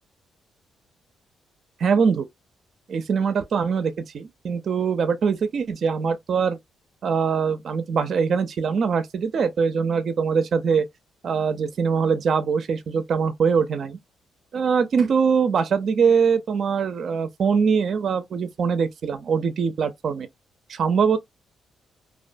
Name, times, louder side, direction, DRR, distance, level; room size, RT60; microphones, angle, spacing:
voice 1, 1.8-2.3 2.9-6.6 7.0-10.9 11.2-14.0 14.5-20.3 20.7-21.2, right 6 dB, 55° right, 0.4 m, -22 dB
2.4 x 2.1 x 2.5 m
cardioid pair, 90°, 0 cm